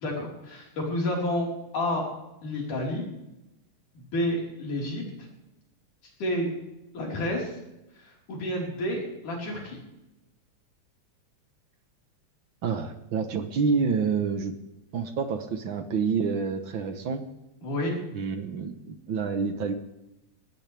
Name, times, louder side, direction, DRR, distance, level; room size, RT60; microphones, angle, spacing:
voice 1, 0.0-2.0 2.4-3.1 3.9-5.0 6.2-6.5 6.9-7.5 8.0-9.8 17.6-18.0, left 1 dB, 85° left, -2 dB, 6.2 m, -30 dB
voice 2, 12.6-14.5 14.9-17.2 18.1-19.7, right 5 dB, 55° right, 8 dB, 1.4 m, -28 dB
19.5 x 19.0 x 3.5 m, 0.95 s
omnidirectional pair, 3.5 m